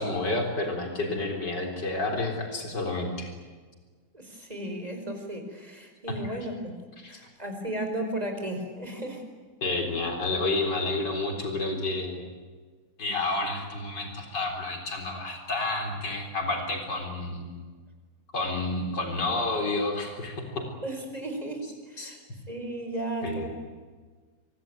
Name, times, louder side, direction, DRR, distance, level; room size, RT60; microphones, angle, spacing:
voice 1, 0.0-3.3 7.0-7.2 9.6-12.2 13.0-17.6 18.3-20.6 22.0-22.1 23.2-23.5, left 2 dB, 90° left, 2 dB, 4.6 m, -30 dB
voice 2, 4.1-6.7 7.1-9.2 20.8-23.5, right 1 dB, 20° right, 4 dB, 5.0 m, -35 dB
25.0 x 24.0 x 9.1 m, 1.5 s
omnidirectional pair, 1.8 m